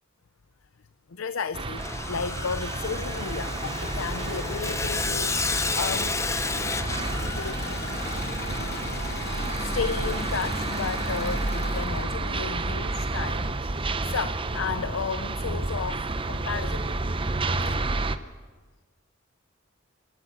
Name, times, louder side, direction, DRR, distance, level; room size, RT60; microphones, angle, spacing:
voice 1, 1.1-6.2 7.2-8.1 9.6-16.9, left 5 dB, 70° left, 13 dB, 0.6 m, -33 dB
sound 1, 1.5-18.2, right 2 dB, 25° right, 0.7 m, -30 dB
Sawing, 1.8-12.0, left 3 dB, 15° left, 0.7 m, -33 dB
Engine / Mechanisms, 2.7-12.9 14.5-15.2 15.8-15.9 16.2-16.3 17.1-17.2 17.5-17.7, left 2 dB, 50° left, 2.4 m, -38 dB
27.0 x 12.0 x 8.1 m, 1.4 s
head